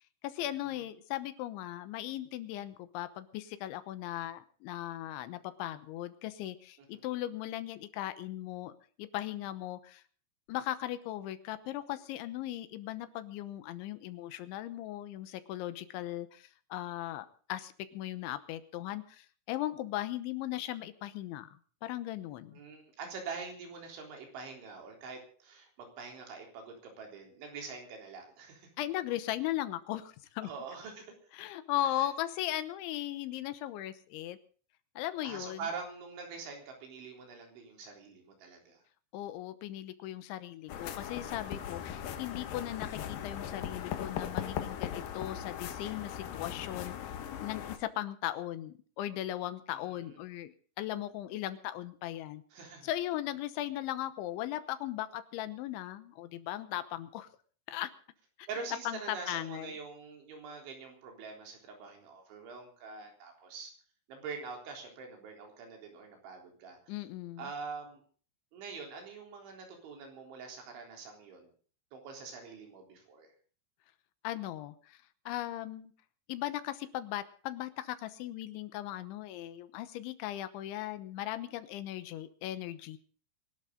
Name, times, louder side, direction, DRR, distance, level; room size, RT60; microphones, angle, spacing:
voice 1, 0.2-10.0 10.5-22.6 28.8-30.5 31.3-34.4 35.0-35.7 39.1-47.1 47.4-52.4 52.8-57.3 57.7-57.9 58.4-58.5 58.9-59.7 66.9-67.5 74.2-75.9 76.3-83.0, left 13 dB, 80° left, 12 dB, 3.4 m, -38 dB
voice 2, 22.5-28.7 30.4-31.2 32.0-32.1 35.2-38.8 49.7-50.2 52.5-52.9 58.5-63.7 64.1-66.8 67.4-68.0 68.5-71.5 71.9-73.3, right 5 dB, 75° right, 2 dB, 6.1 m, -44 dB
sound 1, 40.7-47.8, left 9 dB, 65° left, 2.5 m, -39 dB
24.0 x 12.0 x 3.9 m, 0.43 s
omnidirectional pair, 5.4 m